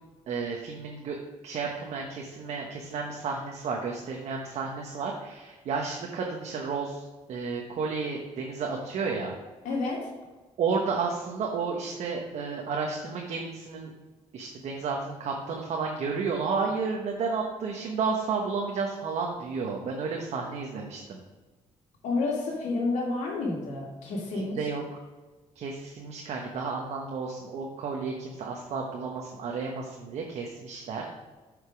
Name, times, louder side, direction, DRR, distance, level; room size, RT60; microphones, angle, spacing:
voice 1, 0.3-1.2 1.4-9.3 10.6-13.9 14.3-21.2 24.3-25.0 25.5-31.0, right 5 dB, 65° right, 0 dB, 1.1 m, -32 dB
voice 2, 9.6-10.0 22.0-24.6, left 3 dB, 90° left, -1 dB, 2.3 m, -29 dB
8.1 x 5.2 x 5.1 m, 1.3 s
cardioid pair, 110°, 12 cm